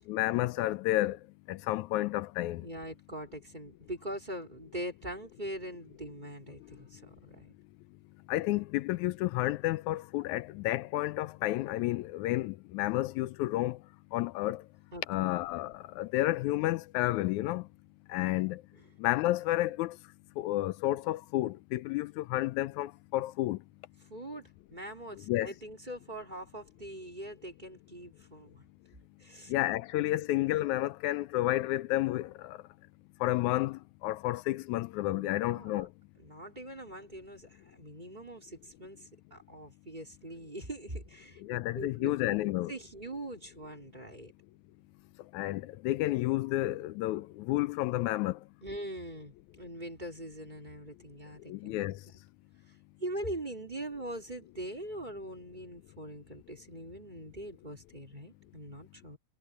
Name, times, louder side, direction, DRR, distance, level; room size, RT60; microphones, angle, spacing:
voice 1, 0.1-1.2 1.5-2.7 8.3-13.8 14.1-14.7 15.1-17.7 18.1-18.6 19.0-20.0 20.4-23.6 25.3-25.5 29.5-32.6 33.2-35.9 41.4-42.7 45.3-48.4 51.5-52.0, left 16 dB, 85° left, 2.0 m, -31 dB
voice 2, 2.6-7.6 14.9-15.3 18.7-18.8 24.1-28.6 29.2-29.5 30.0-30.1 35.1-35.9 36.2-44.3 48.6-52.2 53.0-59.2, right 1 dB, 15° right, 3.9 m, -42 dB
omnidirectional pair, 3.3 m